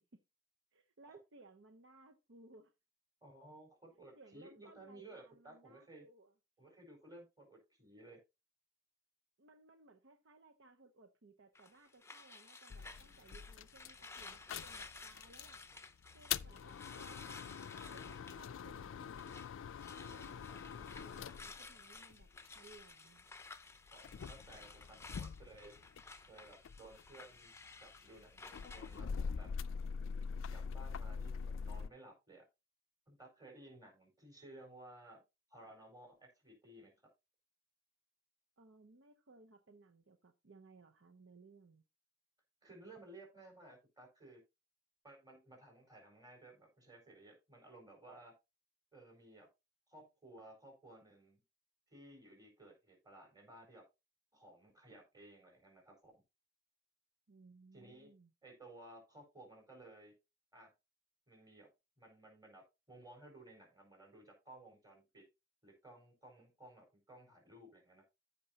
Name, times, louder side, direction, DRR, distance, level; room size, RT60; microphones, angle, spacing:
voice 1, 0.7-2.7 4.1-6.3 9.4-15.6 16.1-17.4 17.7-19.4 20.0-22.3 22.5-23.3 38.6-41.8 57.3-58.3, right 3 dB, 65° right, 6 dB, 0.8 m, -62 dB
voice 2, 3.2-6.0 6.6-8.2 16.4-16.6 23.9-25.7 26.3-27.5 27.8-29.5 30.5-32.5 33.1-35.2 35.5-36.9 42.6-44.4 45.0-48.3 48.9-49.5 49.9-51.4 51.9-53.9 54.3-56.2 57.7-58.1 58.4-60.1 60.5-60.7 61.3-61.7 62.0-65.3 65.6-68.0, right 1 dB, 20° right, 1 dB, 4.6 m, -57 dB
sound 1, 11.6-19.5 19.8-29.0, left 4 dB, 15° left, 0.7 m, -55 dB
sound 2, 12.7-15.6 16.0-22.8 23.6-26.2 26.5-31.9, left 6 dB, 70° left, 0.4 m, -44 dB
14.5 x 5.4 x 2.8 m, 0.25 s
head